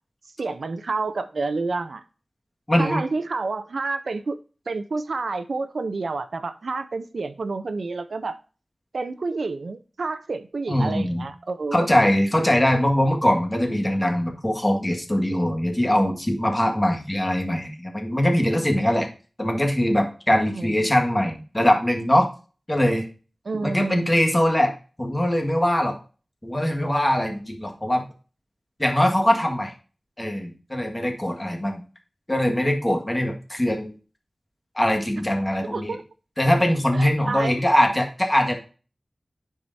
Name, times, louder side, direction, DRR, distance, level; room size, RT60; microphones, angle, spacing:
voice 1, 0.4-2.0 2.8-4.4 4.7-8.4 8.9-11.9 20.5-20.7 23.5-24.4 35.7-36.0 36.9-37.5, right 3 dB, 85° right, 0.5 m, -29 dB
voice 2, 2.7-3.0 10.7-11.2 11.7-19.1 19.4-22.3 22.7-23.0 23.6-26.0 26.4-28.0 28.8-29.7 30.2-31.8 32.3-33.9 34.7-36.0 36.4-38.6, left 1 dB, 20° left, 1.7 m, -22 dB
10.5 x 4.7 x 2.6 m
wide cardioid pair, 75°, 0 cm